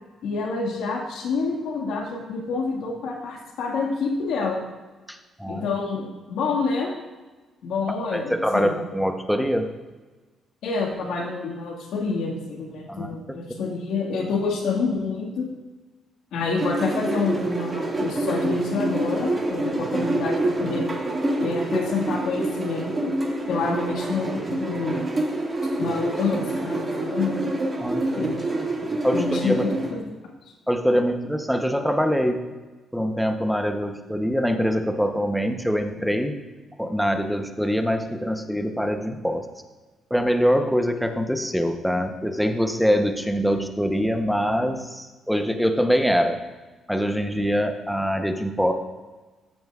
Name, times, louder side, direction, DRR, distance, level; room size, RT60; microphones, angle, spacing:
voice 1, 0.2-4.7 5.5-6.9 7.6-8.7 10.6-15.5 16.3-20.8 21.4-23.2 23.5-25.0 25.8-27.5 28.1-30.0 35.9-36.0, left 4 dB, 80° left, 0 dB, 1.8 m, -28 dB
voice 2, 5.1-5.7 8.1-9.7 12.9-13.4 27.8-28.3 29.0-29.6 30.7-32.4 32.9-36.4 36.8-39.5 40.1-46.4 46.9-48.7, equal, ahead, 6 dB, 0.9 m, -24 dB
sound 1, 16.6-29.9, right 2 dB, 30° right, 2.0 m, -27 dB
14.0 x 7.3 x 2.4 m, 1.3 s
cardioid pair, 90°, 0 cm